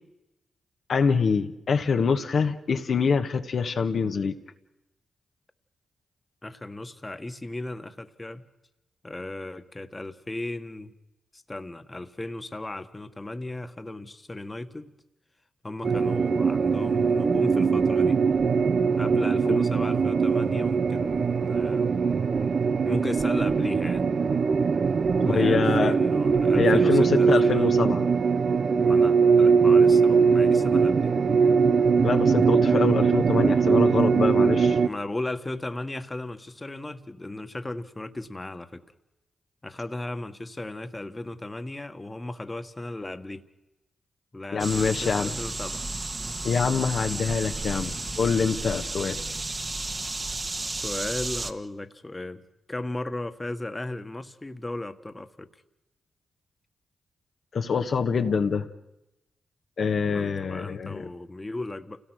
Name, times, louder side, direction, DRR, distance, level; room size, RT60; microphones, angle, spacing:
voice 1, 0.9-4.3 19.5-19.6 25.2-25.9 26.6-28.0 32.0-34.8 44.5-45.3 46.4-49.2 57.5-58.7 59.8-61.1, left 5 dB, 65° left, 5 dB, 1.4 m, -25 dB
voice 2, 6.4-8.5 9.0-10.9 11.3-14.9 15.6-18.2 19.0-21.9 22.8-24.1 25.2-27.7 28.8-31.1 34.8-38.8 39.6-43.5 44.3-45.8 50.7-52.4 52.7-55.5 60.1-62.0, left 2 dB, 25° left, 8 dB, 1.6 m, -36 dB
sound 1, 15.8-34.9, right 5 dB, 60° right, 0.7 m, -21 dB
sound 2, 44.6-51.5, right 2 dB, 35° right, 1.7 m, -33 dB
29.0 x 17.5 x 6.5 m, 0.96 s
supercardioid pair, 45°, 0 cm